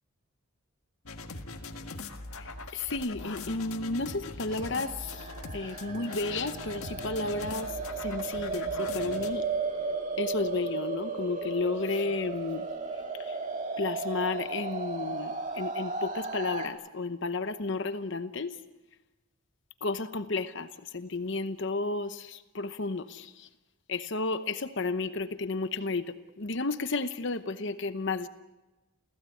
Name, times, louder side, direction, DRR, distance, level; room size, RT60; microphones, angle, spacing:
sound 1, 1.1-9.3, left 3 dB, 85° left, 1.8 m, -41 dB
voice 1, 2.7-5.2 5.5-7.7 8.0-9.4 10.2-12.6 13.8-18.5 19.8-20.7 20.9-23.3 23.9-28.3, left 3 dB, 55° left, 10 dB, 0.9 m, -32 dB
sound 2, 4.5-16.7, right 4 dB, 35° right, 2.0 m, -35 dB
29.5 x 16.0 x 8.5 m, 1.1 s
head